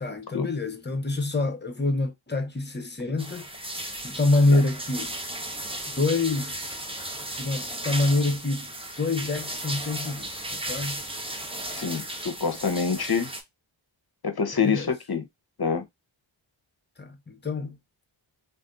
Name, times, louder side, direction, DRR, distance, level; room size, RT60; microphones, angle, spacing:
voice 1, 0.0-3.5 4.0-5.1 6.0-6.6 7.4-8.7 9.0-11.0 14.6-14.9 17.0-17.8, left 2 dB, 20° left, 0.7 m, -26 dB
sound 1, 3.2-13.4, right 1 dB, 10° right, 0.7 m, -35 dB
voice 2, 11.7-13.3 14.2-15.3 15.6-15.8, left 5 dB, 50° left, 0.8 m, -26 dB
2.6 x 2.6 x 3.6 m
wide cardioid pair, 45°, 49 cm